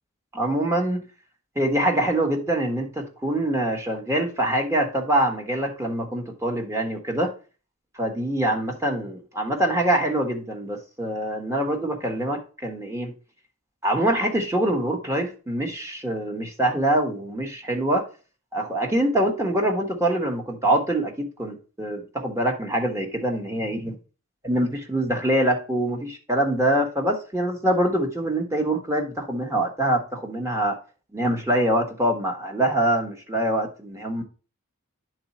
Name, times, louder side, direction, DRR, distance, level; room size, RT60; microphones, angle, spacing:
voice 1, 0.4-1.0 1.6-7.3 7.9-13.1 13.8-18.1 18.5-24.0 24.4-30.8 31.1-34.2, right 1 dB, 15° right, 2 dB, 1.1 m, -24 dB
9.6 x 4.0 x 4.1 m, 0.35 s
head